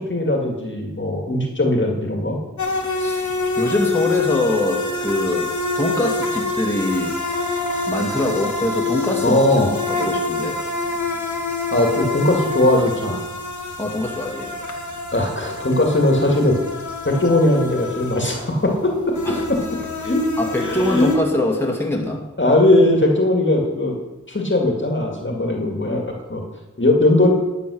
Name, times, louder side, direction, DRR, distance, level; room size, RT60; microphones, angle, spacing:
voice 1, 0.0-2.4 9.2-9.7 11.7-13.2 15.1-16.6 17.0-18.9 19.5-19.6 20.0-20.3 20.6-21.2 22.4-23.9 24.3-26.0 26.3-26.4 26.8-27.3, left 1 dB, 40° left, 0 dB, 2.1 m, -19 dB
sound 1, 2.6-21.2, left 3 dB, 70° left, 1.6 m, -27 dB
voice 2, 2.9-3.3 3.6-7.2 7.9-9.4 9.9-10.6 13.8-14.6 19.3-19.4 20.4-22.2, left 1 dB, 10° left, -1 dB, 2.2 m, -23 dB
11.5 x 6.9 x 6.3 m, 1.1 s
wide cardioid pair, 45°, 31 cm